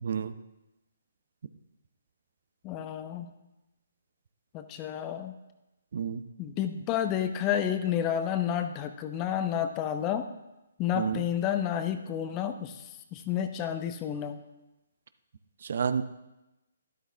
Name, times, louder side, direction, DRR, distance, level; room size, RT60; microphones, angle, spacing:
voice 1, 0.0-0.3 5.9-6.2 11.0-11.2 15.7-16.0, right 7 dB, 55° right, 12 dB, 0.6 m, -29 dB
voice 2, 2.6-3.3 4.5-5.3 6.4-10.3 10.8-14.4, left 9 dB, 25° left, 8 dB, 0.8 m, -30 dB
12.5 x 11.5 x 3.4 m, 0.98 s
figure-of-eight pair, 135°, 0 cm